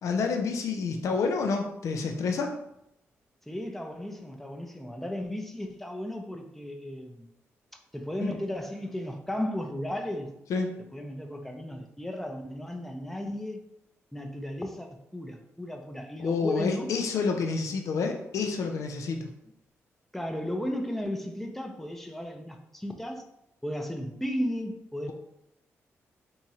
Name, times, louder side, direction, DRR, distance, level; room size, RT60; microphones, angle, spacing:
voice 1, 0.0-2.5 8.2-8.3 10.5-10.7 16.2-19.3, left 4 dB, 75° left, 4 dB, 0.4 m, -28 dB
voice 2, 3.5-7.3 7.9-10.3 10.9-13.6 14.1-16.9 20.1-23.2 23.6-25.1, left 1 dB, 5° left, 3 dB, 0.5 m, -35 dB
3.5 x 3.0 x 2.8 m, 0.82 s
cardioid pair, 60°, 5 cm